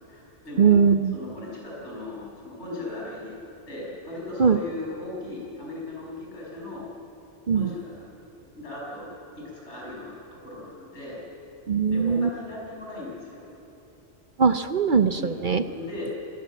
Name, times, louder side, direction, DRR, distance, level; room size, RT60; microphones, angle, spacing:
voice 1, 0.0-0.8 1.1-3.4 3.7-6.9 7.5-7.9 8.4-9.1 9.3-11.2 11.9-13.5 15.2-16.2, left 2 dB, 75° left, -4 dB, 7.0 m, -37 dB
voice 2, 0.6-1.2 4.4-4.6 7.5-7.7 11.7-12.3 14.4-15.6, right 6 dB, 50° right, 10 dB, 0.8 m, -20 dB
25.0 x 19.0 x 7.5 m, 2.9 s
omnidirectional pair, 1.2 m